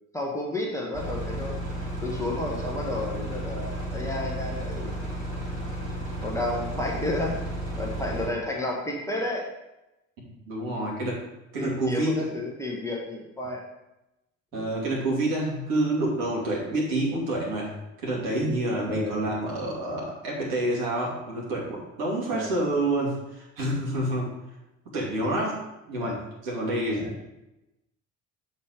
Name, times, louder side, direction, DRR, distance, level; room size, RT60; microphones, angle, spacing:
voice 1, 0.1-1.6 2.0-5.0 6.2-7.4 7.8-9.5 11.6-13.6 14.6-14.7 18.9-19.2 22.3-22.5 26.0-26.1 27.0-27.1, left 1 dB, 5° left, -3 dB, 1.4 m, -31 dB
sound 1, 0.9-8.3, right 1 dB, 75° right, 1.7 m, -33 dB
voice 2, 10.5-11.2 11.5-12.3 14.5-24.3 24.9-25.6 25.9-27.3, right 1 dB, 60° right, -4 dB, 2.6 m, -28 dB
7.2 x 4.3 x 5.0 m, 0.94 s
figure-of-eight pair, 55°, 40 cm